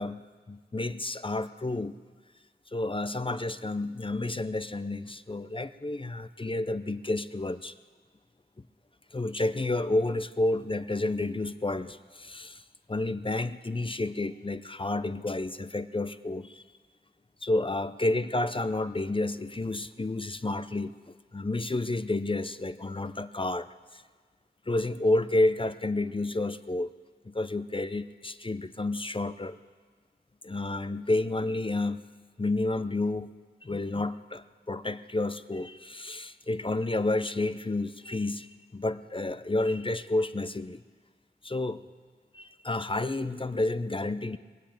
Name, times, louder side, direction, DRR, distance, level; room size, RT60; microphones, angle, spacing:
voice 1, 0.0-1.9 2.7-7.7 9.1-12.6 12.9-16.6 17.4-21.0 21.3-23.7 24.7-26.9 27.3-29.6 30.4-32.0 32.4-33.3 33.6-40.8 41.4-41.8 42.3-44.4, left 2 dB, 30° left, 12 dB, 0.5 m, -30 dB
20.5 x 7.9 x 8.8 m, 1.5 s
wide cardioid pair, 60°, 18 cm